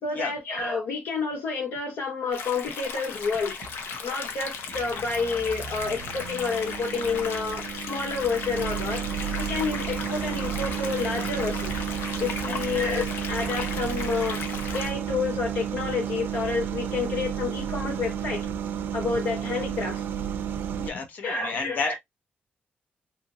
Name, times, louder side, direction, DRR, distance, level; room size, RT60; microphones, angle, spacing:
voice 1, 0.0-3.6 4.0-9.0 9.4-11.7 12.2-14.4 14.7-18.5 18.9-20.0 21.2-21.9, left 4 dB, 75° left, 1.8 m, -29 dB
sound 1, 2.3-14.9, left 5 dB, 90° left, 0.6 m, -36 dB
sound 2, 3.1-3.8 4.3-20.9, right 8 dB, 75° right, 0.4 m, -32 dB
voice 2, 20.8-21.9, left 4 dB, 50° left, 0.8 m, -32 dB
2.9 x 2.5 x 2.8 m
wide cardioid pair, 160°, 4 cm